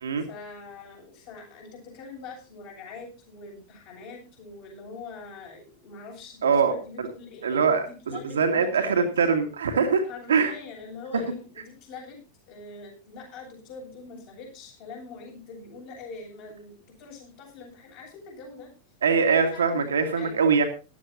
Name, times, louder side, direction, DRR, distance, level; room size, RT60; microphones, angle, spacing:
voice 1, 0.3-9.1 10.1-12.2 12.5-18.7 19.3-20.5, left 4 dB, 45° left, 1 dB, 7.8 m, -43 dB
voice 2, 6.4-6.7 7.0-7.1 7.4-10.0 10.3-10.5 11.1-11.2 19.0-20.6, right 5 dB, 65° right, 6 dB, 2.0 m, -23 dB
17.5 x 13.0 x 2.8 m, 0.33 s
figure-of-eight pair, 90°, 0 cm